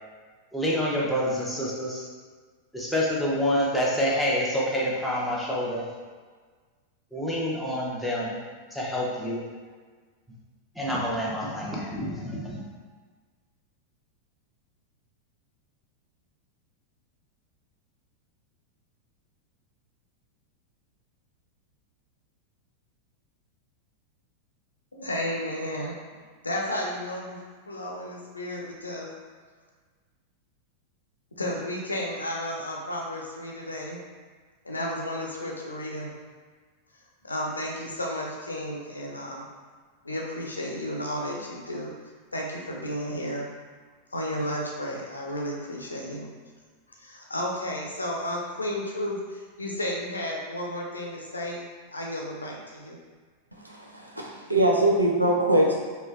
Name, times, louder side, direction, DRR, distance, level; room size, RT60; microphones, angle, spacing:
voice 1, 0.5-2.1 2.7-5.9 7.1-8.4 8.7-9.4 10.8-12.7, equal, ahead, -5 dB, 0.8 m, -27 dB
voice 2, 24.9-26.0 26.4-29.1 31.4-34.0 34.6-36.1 37.2-39.5 40.0-41.9 42.3-43.5 44.1-46.3 47.0-51.7 51.9-53.0, left 1 dB, 80° left, -1 dB, 0.5 m, -33 dB
voice 3, 53.6-55.8, right 1 dB, 85° right, -1 dB, 0.5 m, -22 dB
4.1 x 2.4 x 2.5 m, 1.5 s
figure-of-eight pair, 90°, 0 cm